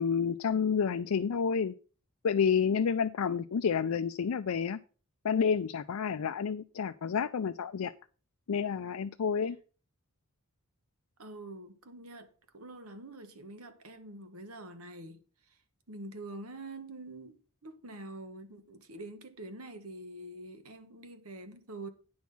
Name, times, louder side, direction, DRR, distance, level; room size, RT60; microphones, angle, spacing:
voice 1, 0.0-1.7 2.2-4.8 5.2-7.9 8.5-9.6, left 6 dB, 85° left, 0.4 m, -29 dB
voice 2, 11.2-15.6 15.9-21.9, right 2 dB, 85° right, 1.4 m, -46 dB
9.5 x 6.2 x 5.5 m
head